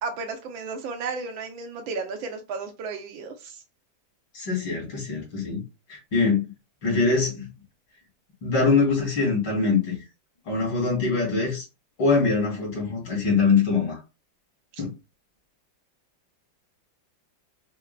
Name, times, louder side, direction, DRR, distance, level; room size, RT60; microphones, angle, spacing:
voice 1, 0.0-3.6 14.7-14.8, right 4 dB, 85° right, 1.6 m, -33 dB
voice 2, 4.3-5.6 5.9-6.4 6.8-7.5 8.4-10.0 10.5-11.6 12.0-14.0 14.8-14.9, left 4 dB, 75° left, 2.9 m, -23 dB
5.9 x 2.4 x 2.2 m
omnidirectional pair, 2.1 m